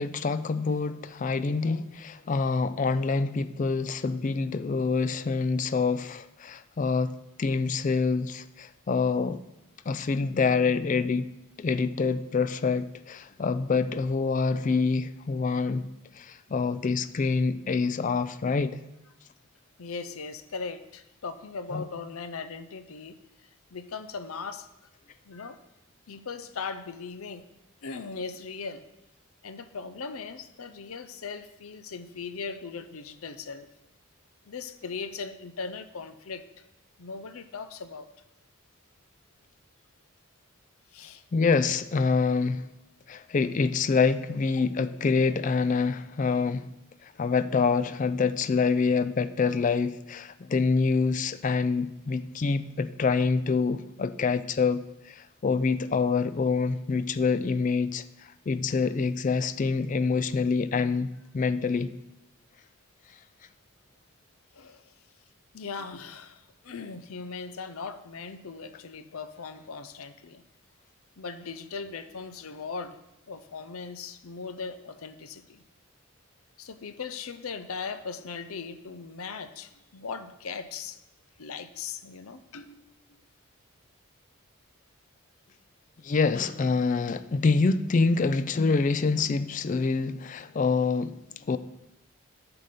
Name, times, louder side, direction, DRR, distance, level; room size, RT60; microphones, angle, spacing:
voice 1, 0.0-7.1 7.4-9.4 9.9-11.3 11.6-15.9 16.2-18.8 21.7-21.8 41.3-42.7 43.1-46.7 47.0-61.1 61.3-61.9 86.0-91.2 91.5-91.6, left 4 dB, 35° left, 13 dB, 0.3 m, -26 dB
voice 2, 19.8-24.7 25.2-25.6 26.1-27.5 27.8-28.8 29.4-33.7 34.4-36.6 37.0-38.1 40.9-41.2 49.4-49.5 64.5-64.9 65.5-70.4 71.2-73.0 73.3-75.6 76.6-81.0 81.4-82.9, left 5 dB, 75° left, 11 dB, 0.6 m, -39 dB
10.5 x 3.9 x 6.6 m, 0.91 s
head